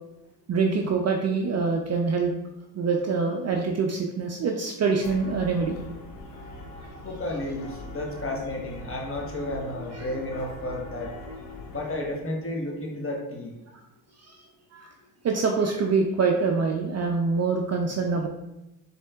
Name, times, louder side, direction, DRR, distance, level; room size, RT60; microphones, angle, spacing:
voice 1, 0.5-2.3 2.7-5.8 6.8-6.9 14.3-14.4 14.7-14.9 15.2-18.3, right 4 dB, 35° right, 2 dB, 0.5 m, -25 dB
sound 1, 5.0-11.9, left 1 dB, 85° left, 0.7 m, -41 dB
voice 2, 7.0-11.1 11.7-13.5, left 1 dB, 25° left, 0 dB, 1.0 m, -32 dB
4.2 x 3.3 x 2.4 m, 0.94 s
hypercardioid pair, 55°, 48 cm